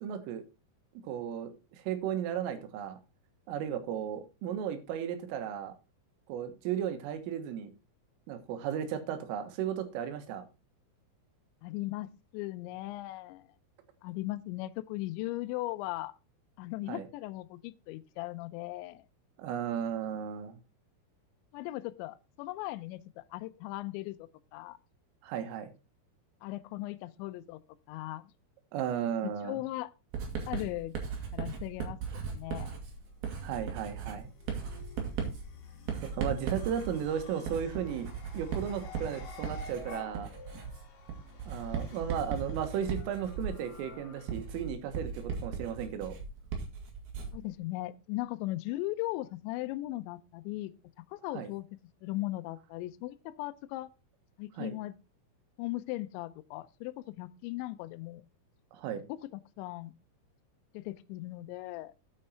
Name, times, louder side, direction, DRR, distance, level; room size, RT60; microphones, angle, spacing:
voice 1, 0.0-0.4 1.0-3.0 3.5-5.7 6.3-7.7 8.3-10.5 16.9-17.1 19.4-20.6 25.2-25.7 28.7-29.6 33.4-34.3 36.0-38.1 38.3-40.3 41.5-46.1 51.4-51.5 54.6-54.8 58.7-59.1, right 9 dB, 85° right, 3.9 m, -35 dB
voice 2, 11.6-13.5 14.0-16.2 16.6-19.0 21.5-24.8 26.4-27.6 27.9-28.3 29.2-29.9 30.5-31.0 31.3-32.7 47.3-50.7 51.1-51.7 52.0-53.9 54.4-54.9 55.6-58.2 59.1-59.9 60.7-61.9, left 18 dB, 85° left, 2.6 m, -38 dB
Writing, 30.1-47.5, right 6 dB, 55° right, 3.8 m, -38 dB
sound 1, 32.3-44.7, left 4 dB, 55° left, 3.0 m, -52 dB
8.9 x 8.3 x 4.4 m
omnidirectional pair, 5.8 m